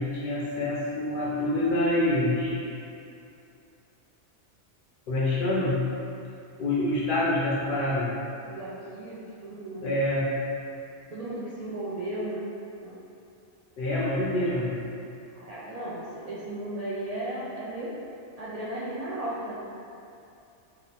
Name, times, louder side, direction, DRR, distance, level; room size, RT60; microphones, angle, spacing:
voice 1, 0.0-2.6 5.1-5.8 6.6-8.1 9.8-10.3 13.8-14.7, left 1 dB, 60° left, -6 dB, 0.6 m, -26 dB
voice 2, 8.4-10.1 11.1-12.5 12.8-13.0 15.3-17.9 18.4-19.6, right 1 dB, 75° right, -8 dB, 0.3 m, -35 dB
2.8 x 2.2 x 4.0 m, 2.6 s
omnidirectional pair, 1.2 m